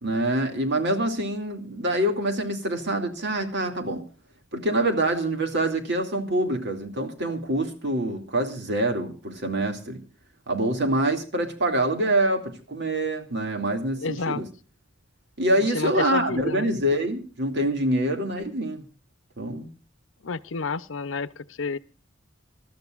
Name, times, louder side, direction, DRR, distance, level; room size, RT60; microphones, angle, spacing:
voice 1, 0.0-4.0 4.5-10.0 10.5-14.5 15.4-18.8 19.4-19.7, right 1 dB, 60° right, 5 dB, 2.5 m, -25 dB
voice 2, 13.9-14.4 15.7-16.7 20.2-21.8, left 4 dB, 80° left, 16 dB, 0.7 m, -30 dB
26.0 x 13.0 x 2.5 m, 0.35 s
head